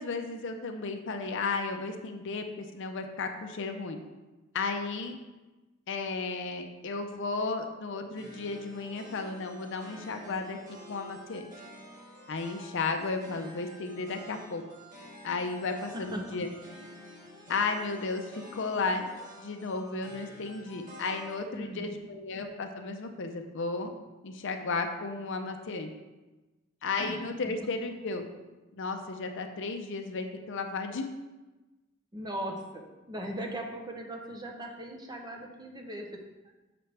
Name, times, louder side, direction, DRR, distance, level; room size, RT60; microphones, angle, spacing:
voice 1, 0.0-4.0 4.5-5.2 5.9-10.6 10.9-11.4 12.3-14.6 15.2-16.5 17.5-19.1 19.4-23.9 24.2-25.9 26.8-28.2 28.7-31.1, left 3 dB, 60° left, 5 dB, 0.6 m, -34 dB
sound 1, 8.2-21.4, equal, 40° right, 1.7 m, -50 dB
voice 2, 15.6-16.2 21.5-22.0 27.0-27.2 32.1-36.1, equal, 20° right, 2 dB, 0.7 m, -39 dB
6.7 x 5.9 x 3.3 m, 1.1 s
head